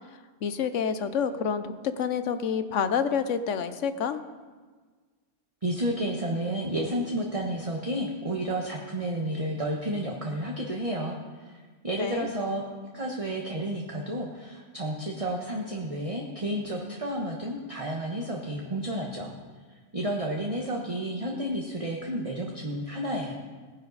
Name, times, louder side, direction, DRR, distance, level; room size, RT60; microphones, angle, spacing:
voice 1, 0.4-4.2 12.0-12.3, left 7 dB, 80° left, 11 dB, 1.1 m, -28 dB
voice 2, 5.6-11.5 11.8-12.6 12.9-19.3 19.9-23.3, right 1 dB, 30° right, -1 dB, 1.3 m, -31 dB
19.0 x 9.9 x 4.0 m, 1.4 s
omnidirectional pair, 1.3 m